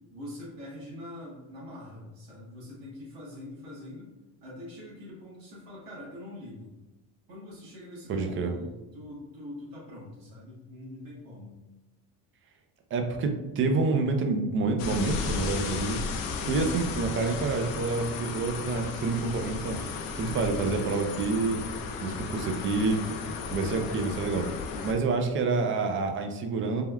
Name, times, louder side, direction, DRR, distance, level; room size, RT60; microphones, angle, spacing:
voice 1, 0.1-4.1 4.4-6.7 7.3-11.6, left 1 dB, 60° right, -6 dB, 1.2 m, -43 dB
voice 2, 8.1-8.5 12.9-16.0 16.4-19.8 20.2-21.6 22.0-23.0 23.5-24.5 24.8-26.8, right 3 dB, 35° right, 5 dB, 0.4 m, -28 dB
sound 1, 14.8-24.9, left 4 dB, 60° left, 0.5 m, -34 dB
3.4 x 2.2 x 2.2 m, 1.1 s
cardioid pair, 110°, 39 cm